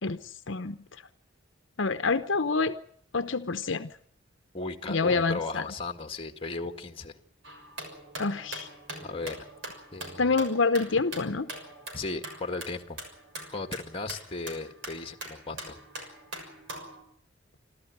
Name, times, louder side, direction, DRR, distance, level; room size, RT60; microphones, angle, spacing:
voice 1, 0.0-0.8 1.8-2.7 3.1-3.9 4.9-5.7 8.2-8.7 10.2-11.5, left 4 dB, 70° left, 10 dB, 0.9 m, -27 dB
voice 2, 4.5-7.2 9.0-9.5 9.9-10.4 11.9-13.1 13.5-15.8, left 3 dB, 30° left, 7 dB, 1.9 m, -36 dB
sound 1, 7.4-17.0, right 1 dB, 70° right, 6.3 m, -43 dB
27.5 x 13.5 x 9.6 m, 0.63 s
head